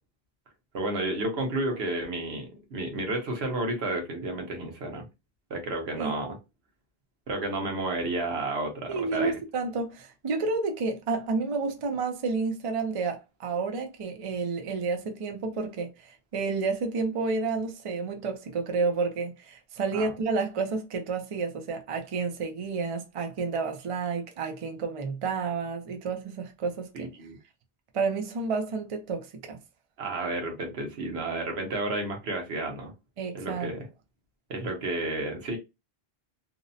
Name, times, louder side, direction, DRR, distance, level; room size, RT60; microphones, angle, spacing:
voice 1, 0.7-5.1 5.5-6.4 7.3-9.4 19.9-20.1 26.9-27.4 30.0-32.9 33.3-33.9 34.5-35.6, right 2 dB, 85° right, 1.1 m, -31 dB
voice 2, 8.9-27.1 27.9-29.6 33.2-33.7, right 4 dB, 45° right, 0.5 m, -30 dB
2.7 x 2.0 x 2.6 m
omnidirectional pair, 1.1 m